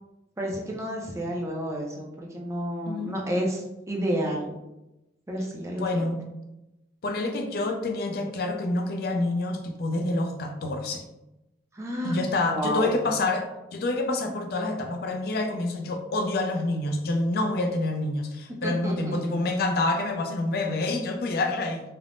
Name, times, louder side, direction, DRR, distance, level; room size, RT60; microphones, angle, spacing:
voice 1, 0.4-4.6 5.3-6.1 11.7-12.2 12.5-13.0 18.6-19.2, equal, 15° right, -1 dB, 0.4 m, -30 dB
voice 2, 2.9-3.3 5.7-6.2 7.0-11.0 12.0-21.8, left 2 dB, 55° left, 5 dB, 0.4 m, -27 dB
3.2 x 2.0 x 2.5 m, 0.94 s
head